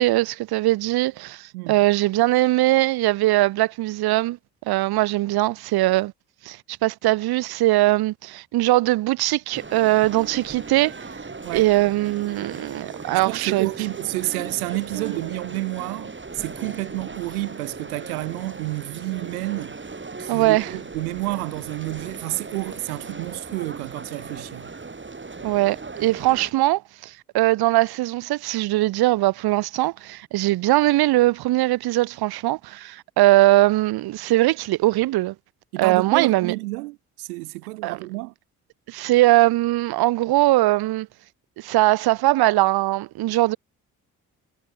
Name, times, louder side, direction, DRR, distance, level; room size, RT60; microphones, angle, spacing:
voice 1, 0.0-4.4 4.7-6.1 6.4-11.1 11.5-13.7 14.9-15.3 20.3-20.7 25.4-35.3 35.8-36.5 37.8-38.0 38.9-41.1 41.6-43.6, right 17 dB, 55° right, 1.0 m, -21 dB
sound 1, 9.5-26.5, right 4 dB, 25° right, 5.9 m, -38 dB
voice 2, 13.1-19.8 20.2-24.7 35.7-38.3, right 22 dB, 75° right, 1.1 m, -30 dB
figure-of-eight pair, 45°, 44 cm